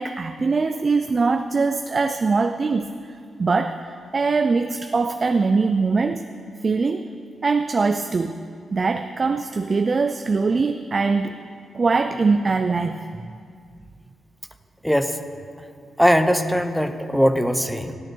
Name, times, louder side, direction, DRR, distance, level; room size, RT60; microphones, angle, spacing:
voice 1, 0.0-2.9 3.4-6.3 6.6-7.1 7.4-8.4 8.7-11.3 11.7-13.3, right 4 dB, 35° right, 8 dB, 0.4 m, -22 dB
voice 2, 16.0-17.9, equal, ahead, 9 dB, 0.7 m, -20 dB
16.0 x 9.0 x 4.6 m, 2.3 s
cardioid pair, 110°, 0 cm